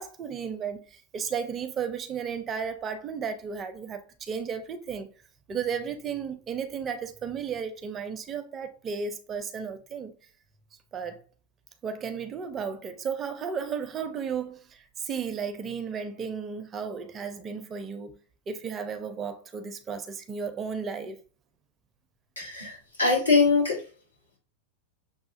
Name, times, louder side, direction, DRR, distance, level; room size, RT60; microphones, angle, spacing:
voice 1, 0.0-5.1 5.5-10.1 10.9-11.2 11.8-18.2 18.5-21.2, right 6 dB, 25° right, 0.5 m, -34 dB
voice 2, 22.3-23.8, left 4 dB, 85° left, 1.6 m, -23 dB
6.3 x 2.4 x 2.5 m
figure-of-eight pair, 90°, 0 cm